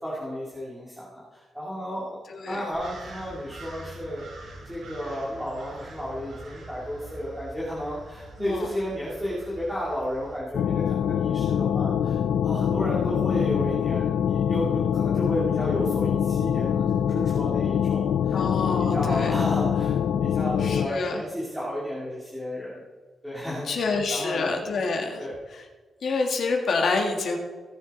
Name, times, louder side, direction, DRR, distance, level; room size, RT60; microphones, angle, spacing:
voice 1, 0.0-2.2 2.5-4.2 4.6-12.2 12.4-19.9 20.2-22.8 23.2-24.5 25.2-25.3, equal, 5° right, -8 dB, 2.1 m, -33 dB
voice 2, 2.3-2.6 8.4-8.7 18.3-19.3 20.6-21.2 23.7-25.6 26.0-27.4, left 3 dB, 55° left, 3 dB, 1.9 m, -27 dB
sound 1, 2.7-10.4, right 2 dB, 75° right, 4.1 m, -44 dB
sound 2, 10.5-20.9, left 8 dB, 90° left, 0.4 m, -24 dB
17.5 x 7.3 x 4.0 m, 1.4 s
wide cardioid pair, 180°, 0 cm